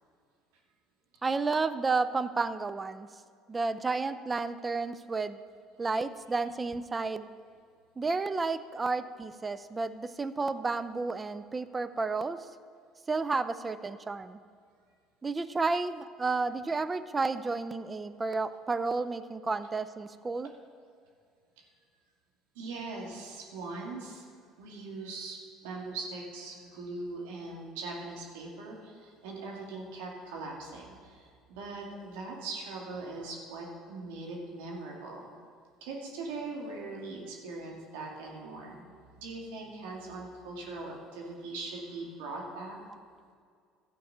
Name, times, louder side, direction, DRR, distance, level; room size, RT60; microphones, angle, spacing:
voice 1, 1.2-3.1 3.5-5.4 5.8-7.3 8.0-12.5 13.1-14.4 15.2-20.5, right 3 dB, 25° right, 13 dB, 0.6 m, -31 dB
voice 2, 22.6-24.2 24.6-25.4 25.6-35.3 35.8-38.9 39.2-42.8, right 3 dB, 85° right, -1 dB, 2.2 m, -41 dB
13.0 x 4.7 x 7.9 m, 2.1 s
supercardioid pair, 80°, 0 cm